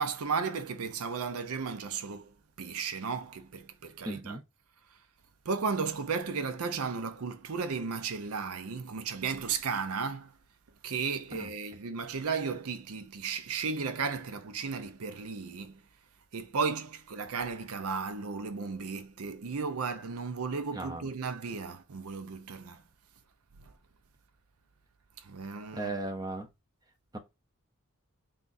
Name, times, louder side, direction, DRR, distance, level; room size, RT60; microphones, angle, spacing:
voice 1, 0.0-2.3 2.6-4.4 5.5-10.3 10.8-15.7 16.3-22.8 25.2-26.0, right 5 dB, 75° right, 0.6 m, -34 dB
voice 2, 4.1-4.4 11.3-11.5 20.7-21.1 25.7-26.5 27.1-27.2, right 2 dB, 15° right, 0.5 m, -36 dB
3.6 x 2.4 x 4.0 m
head